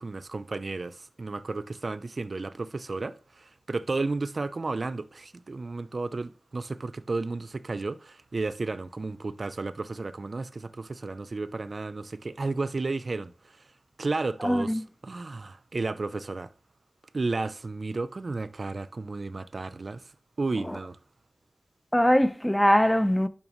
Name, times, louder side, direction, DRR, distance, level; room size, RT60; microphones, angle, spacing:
voice 1, 0.0-13.7 14.0-16.5 17.1-20.1 20.4-21.0, right 3 dB, 55° right, 0.6 m, -33 dB
voice 2, 14.4-14.8 20.7-20.8 21.9-23.3, equal, 10° left, 0.7 m, -22 dB
11.0 x 5.9 x 3.2 m
cardioid pair, 55°, 0 cm